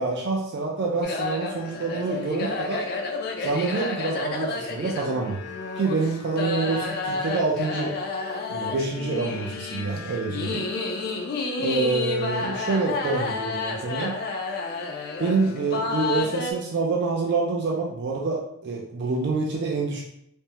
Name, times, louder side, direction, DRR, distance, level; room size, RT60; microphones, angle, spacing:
voice 1, 0.0-2.8 3.4-5.4 5.8-8.0 8.5-10.7 11.6-14.2 15.2-20.0, right 3 dB, 50° right, -1 dB, 0.4 m, -27 dB
sound 1, 1.0-16.5, left 3 dB, 45° left, 0.4 m, -31 dB
3.4 x 2.0 x 2.7 m, 0.75 s
head